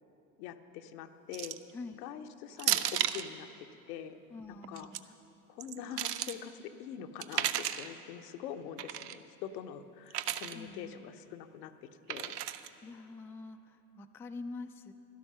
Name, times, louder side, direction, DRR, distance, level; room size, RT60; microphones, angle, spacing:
voice 1, 0.4-1.6 2.0-3.5 3.9-4.2 4.5-5.1 5.5-12.4, left 9 dB, 75° left, 8 dB, 0.8 m, -44 dB
sound 1, 1.3-1.7 2.6-3.3 4.6-5.0 5.6-6.4 7.2-7.9 8.8-9.2 10.1-10.6 12.1-12.7, right 11 dB, 85° right, 0.6 m, -33 dB
voice 2, 4.3-5.1 10.5-11.0 12.8-14.9, left 3 dB, 5° left, 6 dB, 0.3 m, -45 dB
12.5 x 12.0 x 5.6 m, 2.9 s
hypercardioid pair, 80°, 46 cm